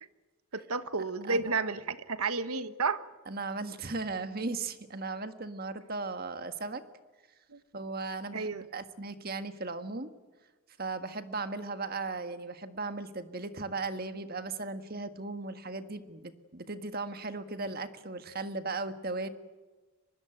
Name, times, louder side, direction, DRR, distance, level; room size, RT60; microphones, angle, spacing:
voice 1, 0.5-3.0 7.5-7.6 8.3-8.6, right 4 dB, 80° right, 12 dB, 1.3 m, -31 dB
voice 2, 1.3-1.7 3.3-6.8 7.7-10.1 10.8-19.3, right 3 dB, 40° right, 9 dB, 1.6 m, -37 dB
24.5 x 20.5 x 9.1 m, 1.3 s
head